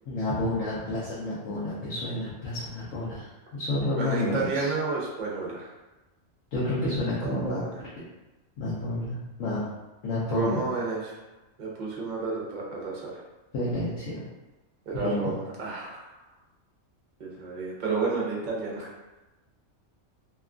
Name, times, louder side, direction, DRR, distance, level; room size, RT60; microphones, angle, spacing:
voice 1, 0.1-3.3 3.5-4.7 6.5-7.6 8.6-9.6 10.0-10.6 13.5-14.2 14.9-15.3, left 1 dB, 90° left, -9 dB, 1.0 m, -30 dB
voice 2, 4.0-5.7 7.2-7.8 10.2-11.2 11.6-13.2 14.9-16.2 17.2-18.9, right 3 dB, 45° right, -4 dB, 0.6 m, -31 dB
2.9 x 2.3 x 2.4 m, 1.1 s
omnidirectional pair, 1.3 m